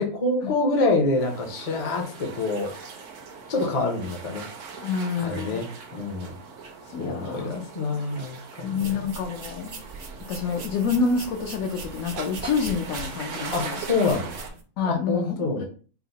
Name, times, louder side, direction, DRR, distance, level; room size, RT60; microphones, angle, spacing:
voice 1, 0.0-2.7 3.5-4.4 5.2-6.3 7.0-8.9 13.5-14.3 14.8-15.6, left 3 dB, 35° left, 1 dB, 0.6 m, -26 dB
sound 1, 1.2-14.5, right 5 dB, 65° right, 0.9 m, -40 dB
voice 2, 4.8-5.6 6.9-7.5 8.6-9.8 10.3-13.8 14.8-15.6, left 5 dB, 70° left, 3 dB, 1.0 m, -28 dB
sound 2, 8.7-14.6, right 3 dB, 80° right, 0.3 m, -41 dB
4.6 x 2.0 x 4.0 m, 0.39 s
omnidirectional pair, 1.6 m